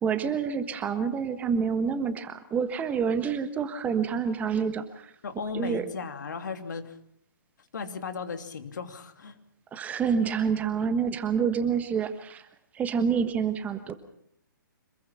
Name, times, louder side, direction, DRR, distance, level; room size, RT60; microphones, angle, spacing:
voice 1, 0.0-5.1 5.5-5.8 9.7-12.5 12.7-13.9, right 6 dB, 15° right, 10 dB, 1.3 m, -28 dB
voice 2, 5.2-7.0 7.7-9.3, left 5 dB, 60° left, 7 dB, 2.7 m, -36 dB
26.5 x 21.5 x 5.8 m, 0.69 s
figure-of-eight pair, 130°, 11 cm